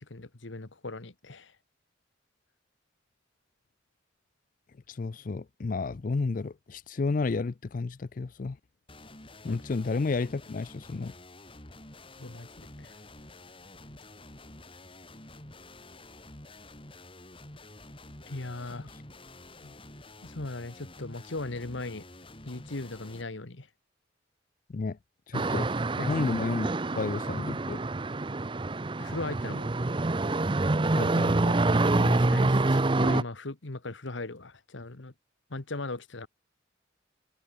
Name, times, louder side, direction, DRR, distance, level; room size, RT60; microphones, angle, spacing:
voice 1, 0.0-1.5 9.4-9.6 12.2-13.0 18.3-18.9 20.2-22.1 22.4-23.7 26.0-26.1 29.0-29.7 32.0-35.1 35.5-36.3, left 2 dB, 75° left, 1.5 m, -38 dB
voice 2, 4.9-8.6 9.4-11.1 19.6-19.7 24.7-25.0 25.3-25.7 26.1-27.8 30.9-31.6, left 3 dB, 45° left, 0.4 m, -31 dB
sound 1, 8.9-23.2, left 2 dB, 30° left, 3.6 m, -49 dB
sound 2, 25.3-33.2, right 2 dB, 25° right, 0.6 m, -26 dB
head